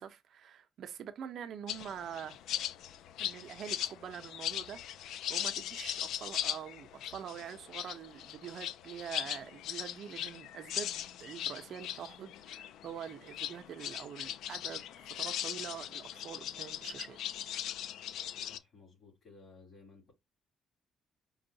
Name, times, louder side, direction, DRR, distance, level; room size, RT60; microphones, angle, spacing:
voice 1, 0.0-2.4 3.2-17.2, right 8 dB, 60° right, 0.6 m, -45 dB
sound 1, 1.7-18.6, left 11 dB, 85° left, 0.3 m, -39 dB
voice 2, 18.4-20.1, left 3 dB, 35° left, 3.0 m, -57 dB
5.3 x 2.4 x 2.8 m
cardioid pair, 135°, 0 cm